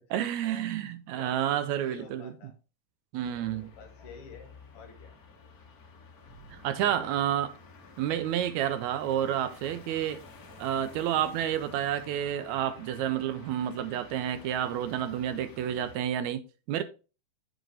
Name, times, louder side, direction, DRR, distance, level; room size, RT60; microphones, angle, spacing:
voice 1, 0.1-2.3 3.1-3.7 6.5-7.5 8.0-10.2 10.6-16.8, right 10 dB, 80° right, 1.8 m, -30 dB
voice 2, 1.1-2.5 3.3-5.2 6.8-7.1, left 5 dB, 55° left, 2.0 m, -50 dB
sound 1, 3.2-16.0, left 3 dB, 75° left, 0.8 m, -51 dB
7.6 x 5.1 x 3.3 m
omnidirectional pair, 3.6 m